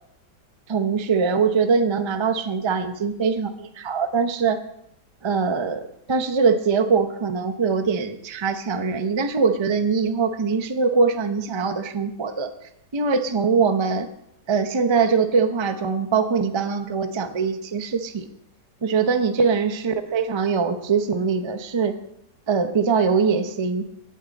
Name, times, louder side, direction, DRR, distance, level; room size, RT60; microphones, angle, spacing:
voice 1, 0.7-4.6 5.2-12.5 12.9-14.1 14.5-18.3 18.8-22.0 22.5-23.9, right 5 dB, 40° right, 8 dB, 0.4 m, -22 dB
17.5 x 8.5 x 4.1 m, 0.79 s
omnidirectional pair, 1.9 m